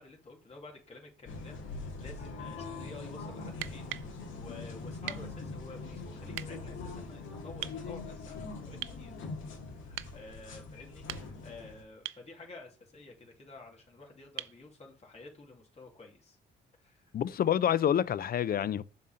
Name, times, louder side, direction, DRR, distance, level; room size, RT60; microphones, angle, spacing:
voice 1, 0.0-9.1 9.7-16.4 16.8-17.0, left 3 dB, 30° left, 2.6 m, -51 dB
sound 1, 1.2-11.8, left 3 dB, 80° left, 2.0 m, -42 dB
sound 2, 3.5-4.1 5.1-5.3 6.3-6.5 7.6-7.8 8.8-9.0 10.0-10.2 10.9-11.5 12.0-12.3 14.4-14.6 16.5-16.6, right 15 dB, 80° right, 0.5 m, -40 dB
voice 2, 17.1-18.8, left 9 dB, 50° left, 0.5 m, -27 dB
7.3 x 4.2 x 6.4 m
cardioid pair, 90°, 20 cm